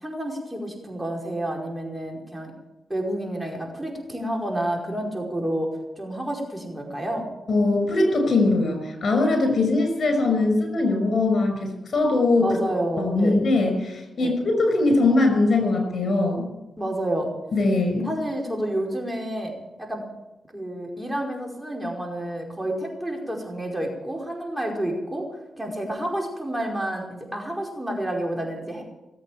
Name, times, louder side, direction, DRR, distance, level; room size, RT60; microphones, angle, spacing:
voice 1, 0.0-2.5 2.9-5.7 6.0-7.3 12.4-13.4 14.2-14.3 16.8-17.3 18.0-19.5 19.8-20.1 20.5-28.8, right 1 dB, 10° right, 0 dB, 4.9 m, -29 dB
voice 2, 7.5-12.5 13.0-16.5 17.5-18.1, left 2 dB, 60° left, 4 dB, 5.9 m, -21 dB
19.0 x 8.5 x 8.6 m, 1.0 s
supercardioid pair, 50°, 0 cm